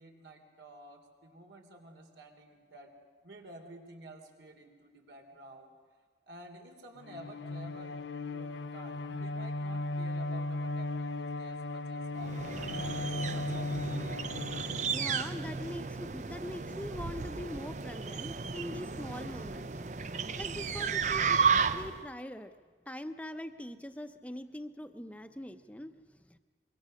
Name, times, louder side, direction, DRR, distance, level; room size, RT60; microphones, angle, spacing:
voice 1, 0.0-2.9 3.2-5.7 6.3-8.0 8.3-13.9, right 1 dB, 85° right, 4 dB, 3.2 m, -52 dB
Bowed string instrument, 7.0-15.4, left 2 dB, 85° left, 0.7 m, -37 dB
sound 1, 12.2-22.1, right 5 dB, 40° right, 0.6 m, -33 dB
voice 2, 14.3-19.7 20.4-22.5 22.9-26.4, left 1 dB, 10° left, 8 dB, 0.8 m, -43 dB
25.0 x 23.0 x 6.5 m, 1.5 s
head